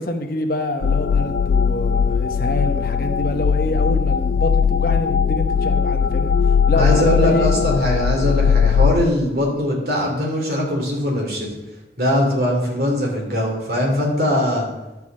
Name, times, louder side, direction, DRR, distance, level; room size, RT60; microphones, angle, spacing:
voice 1, 0.0-6.4 6.7-7.5, left 1 dB, 50° left, 5 dB, 0.9 m, -26 dB
sound 1, 0.8-9.0, left 6 dB, 85° left, 0.4 m, -19 dB
voice 2, 6.8-11.6 12.0-14.7, left 1 dB, 55° right, 0 dB, 2.9 m, -21 dB
11.0 x 4.7 x 7.4 m, 1.0 s
head